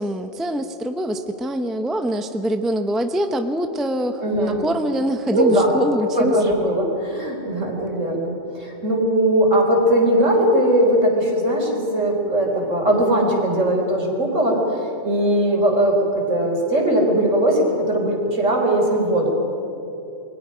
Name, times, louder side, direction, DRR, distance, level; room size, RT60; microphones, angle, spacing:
voice 1, 0.0-6.5, equal, ahead, 6 dB, 0.8 m, -24 dB
voice 2, 4.2-4.6 5.3-5.7 6.1-14.6 15.0-16.0 16.3-19.3, right 1 dB, 70° right, 0 dB, 4.4 m, -19 dB
29.0 x 21.5 x 5.2 m, 2.9 s
omnidirectional pair, 1.4 m